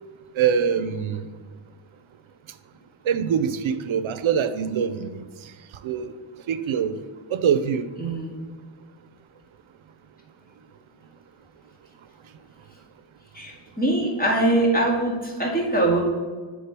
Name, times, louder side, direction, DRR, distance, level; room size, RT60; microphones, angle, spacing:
voice 1, 0.3-1.3 3.0-5.5 5.8-6.2 6.5-7.0 7.3-7.9, right 7 dB, 90° right, 11 dB, 0.6 m, -24 dB
voice 2, 8.0-8.4 13.3-16.0, right 2 dB, 20° left, -2 dB, 2.0 m, -23 dB
9.4 x 3.7 x 5.9 m, 1.5 s
wide cardioid pair, 135°, 46 cm